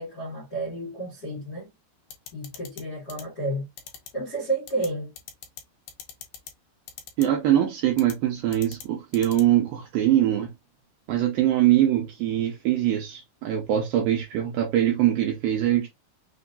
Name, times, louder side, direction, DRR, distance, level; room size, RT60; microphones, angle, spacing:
voice 1, 0.0-1.7 2.3-3.7 4.1-5.1, right 2 dB, 50° left, 1.2 m, -31 dB
sound 1, 2.1-2.8 3.1-3.2 3.8-4.1 4.7-4.9 5.2-5.6 5.9-6.5 6.9-7.3 8.0-8.1 8.5-8.8 9.1-9.4, left 8 dB, 75° left, 2.2 m, -40 dB
voice 2, 7.2-10.5 11.1-15.9, right 12 dB, 75° right, 2.3 m, -23 dB
6.0 x 2.7 x 2.5 m
omnidirectional pair, 4.7 m